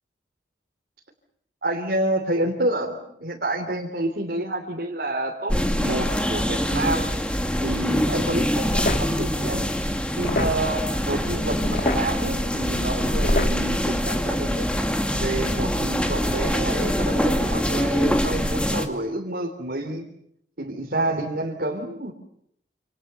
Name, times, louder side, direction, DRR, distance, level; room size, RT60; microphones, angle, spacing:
voice 1, 1.6-7.1 7.6-9.7 10.1-14.7 15.1-20.1 20.6-22.1, right 1 dB, 65° right, 0 dB, 3.4 m, -28 dB
sound 1, 5.5-18.9, equal, 5° left, 2.4 m, -24 dB
sound 2, 8.1-14.1, left 2 dB, 55° left, 2.3 m, -32 dB
28.5 x 28.0 x 7.0 m, 0.74 s
head